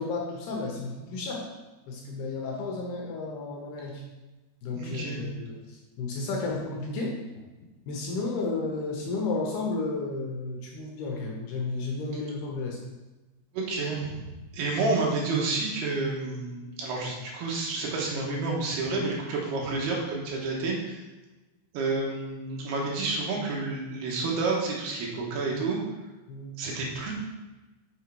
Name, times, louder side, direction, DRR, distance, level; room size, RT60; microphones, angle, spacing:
voice 1, 0.0-1.4 1.9-4.0 4.6-7.2 7.9-12.8 26.3-26.6, left 3 dB, 70° left, -1 dB, 2.6 m, -32 dB
voice 2, 4.7-5.2 13.5-14.2 14.5-21.0 21.7-25.8 26.6-27.1, right 3 dB, 70° right, -2 dB, 3.1 m, -29 dB
6.5 x 6.4 x 4.7 m, 1.1 s
omnidirectional pair, 5.4 m